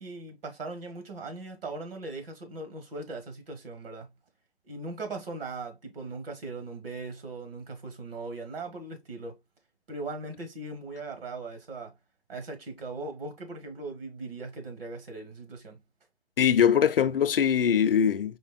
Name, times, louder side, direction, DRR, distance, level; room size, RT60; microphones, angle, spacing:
voice 1, 0.0-4.1 4.6-9.4 9.9-12.0 12.3-15.8, right 3 dB, 60° right, 1.5 m, -39 dB
voice 2, 16.4-18.4, left 8 dB, 60° left, 0.5 m, -22 dB
4.4 x 3.4 x 2.2 m
figure-of-eight pair, 130°, 32 cm